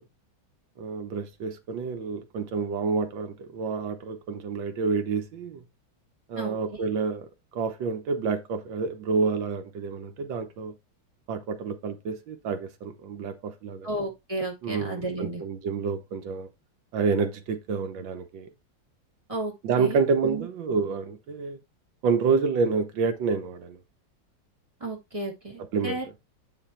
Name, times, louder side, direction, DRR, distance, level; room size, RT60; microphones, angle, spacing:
voice 1, 0.8-5.6 6.3-10.7 11.3-13.9 14.6-16.5 16.9-18.5 19.6-21.6 22.0-23.8 25.7-26.0, right 5 dB, 85° right, 1.7 m, -28 dB
voice 2, 13.8-15.4 19.3-20.5 24.8-26.2, right 2 dB, 15° right, 2.8 m, -33 dB
8.9 x 4.0 x 4.2 m
omnidirectional pair, 2.0 m